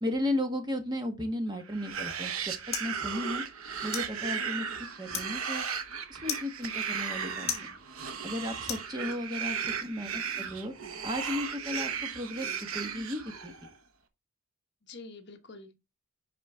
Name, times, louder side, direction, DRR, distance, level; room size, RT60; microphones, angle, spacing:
voice 1, 0.0-2.5 2.8-3.4 3.8-4.7 5.0-5.6 6.1-7.8 8.2-10.7 11.0-12.5 12.7-13.5, left 1 dB, 20° right, 1.2 m, -34 dB
sound 1, 1.7-13.7, right 7 dB, 75° right, 1.0 m, -36 dB
sound 2, 1.9-9.5, left 8 dB, 30° left, 1.8 m, -42 dB
voice 2, 9.4-9.9 14.8-15.7, left 2 dB, 50° left, 1.1 m, -48 dB
10.5 x 4.3 x 3.4 m
head